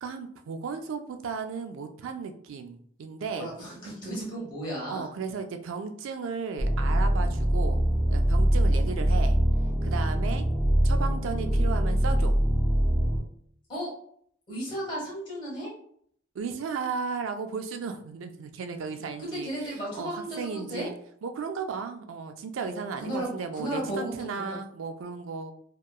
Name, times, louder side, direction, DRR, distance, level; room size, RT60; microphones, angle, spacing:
voice 1, 0.0-3.5 4.9-7.8 8.1-9.4 9.8-10.5 10.8-12.4 16.3-20.9 21.2-25.5, right 5 dB, 85° right, 7 dB, 0.4 m, -35 dB
voice 2, 3.3-5.1 13.7-13.9 14.5-15.7 19.2-20.9 22.6-24.5, right 1 dB, 25° left, -5 dB, 1.1 m, -34 dB
sound 1, 6.6-13.2, right 1 dB, 15° right, 0.4 m, -23 dB
2.8 x 2.2 x 2.3 m, 0.63 s
head